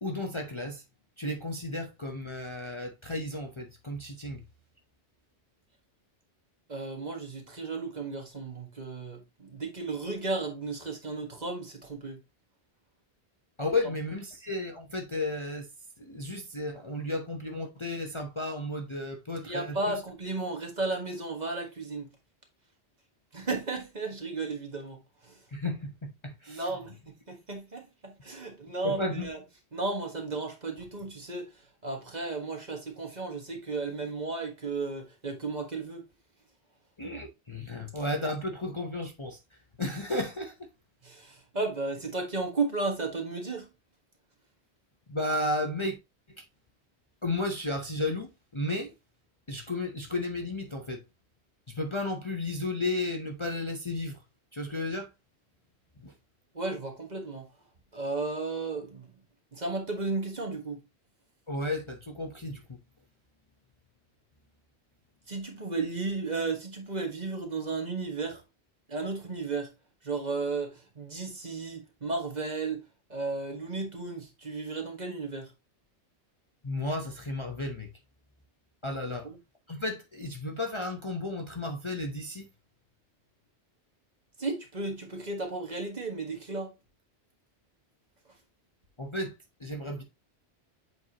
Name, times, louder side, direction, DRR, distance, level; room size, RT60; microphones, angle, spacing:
voice 1, 0.0-0.8 1.2-4.4 13.6-15.7 16.0-20.0 25.5-26.7 28.8-29.3 37.0-40.7 45.1-46.0 47.2-48.9 49.5-51.0 51.7-54.2 54.5-55.1 56.0-56.1 61.5-62.8 76.6-77.9 78.8-79.3 79.7-82.5 89.0-89.3 89.6-90.0, left 2 dB, 30° left, 0.8 m, -33 dB
voice 2, 6.7-12.2 19.4-22.1 23.3-25.4 26.5-29.4 29.7-36.1 41.0-43.7 56.5-57.5 57.9-59.1 59.5-60.8 65.3-68.4 68.9-69.7 70.0-72.8 73.1-75.5 79.1-79.4 84.4-86.7, right 3 dB, 40° right, 1.5 m, -34 dB
7.5 x 4.6 x 2.9 m
omnidirectional pair, 1.2 m